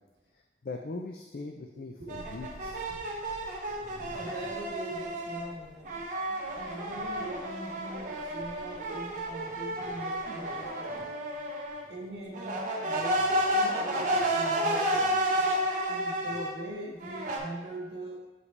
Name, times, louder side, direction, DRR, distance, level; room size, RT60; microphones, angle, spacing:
voice 1, 0.6-2.8, left 3 dB, 55° left, 3 dB, 0.4 m, -40 dB
sound 1, 2.1-5.5 5.8-11.8 12.3-16.5 17.0-17.4, right 1 dB, 45° right, 1.0 m, -31 dB
voice 2, 4.1-6.0 6.5-10.9 11.9-15.2 15.9-18.3, right 1 dB, 75° right, -2 dB, 1.5 m, -42 dB
8.3 x 5.0 x 3.2 m, 1.1 s
head